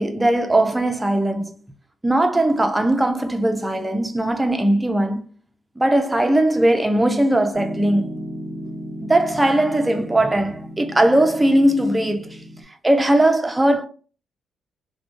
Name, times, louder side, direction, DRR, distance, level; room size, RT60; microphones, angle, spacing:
voice 1, 0.0-1.6 2.0-5.3 5.8-8.2 9.0-12.4 12.8-13.9, right 1 dB, 15° right, 0.5 m, -19 dB
Piano, 7.5-12.6, equal, 20° left, 1.1 m, -35 dB
3.0 x 2.2 x 2.5 m
cardioid pair, 90°, 0 cm